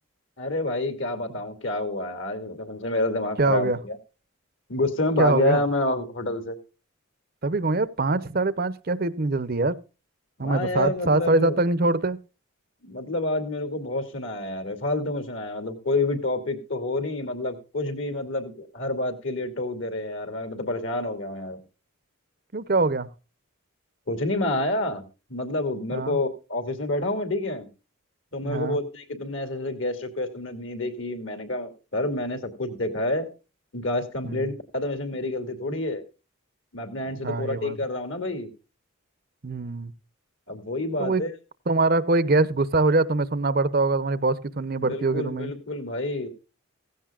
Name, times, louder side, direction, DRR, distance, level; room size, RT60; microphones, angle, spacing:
voice 1, 0.4-4.0 4.7-6.6 10.4-11.6 12.8-21.6 24.1-25.0 25.3-27.7 28.3-33.3 33.7-36.0 36.7-38.5 40.5-41.3 44.8-46.3, left 2 dB, 60° left, 2.5 m, -28 dB
voice 2, 3.4-3.8 5.2-5.6 7.4-9.8 10.4-12.2 22.5-23.1 25.9-26.2 28.4-28.8 34.2-34.5 37.1-37.8 39.4-39.9 41.0-41.2 41.7-45.5, right 3 dB, 45° right, 0.7 m, -23 dB
16.0 x 15.5 x 2.4 m
head